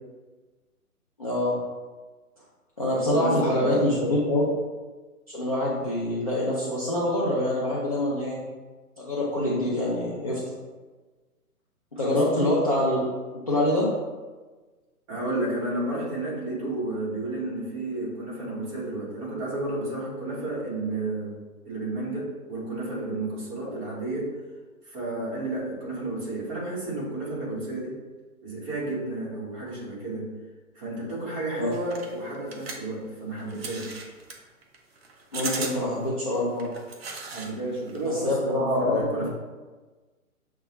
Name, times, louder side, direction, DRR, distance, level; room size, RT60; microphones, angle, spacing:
voice 1, 1.2-1.6 2.8-4.4 5.3-8.4 9.0-10.4 11.9-13.0 13.5-13.9 31.6-31.7 35.3-36.7 38.0-39.3, left 1 dB, 25° left, -8 dB, 0.4 m, -25 dB
voice 2, 2.9-3.9 12.0-12.2 15.1-21.4 21.6-24.3 24.8-28.0 28.4-30.3 30.7-34.1 37.3-39.3, right 2 dB, 20° right, -7 dB, 1.2 m, -32 dB
sound 1, 31.7-37.5 37.8-38.3, right 3 dB, 45° right, 0.6 m, -37 dB
6.5 x 2.2 x 2.9 m, 1.3 s
hypercardioid pair, 145°, 45 cm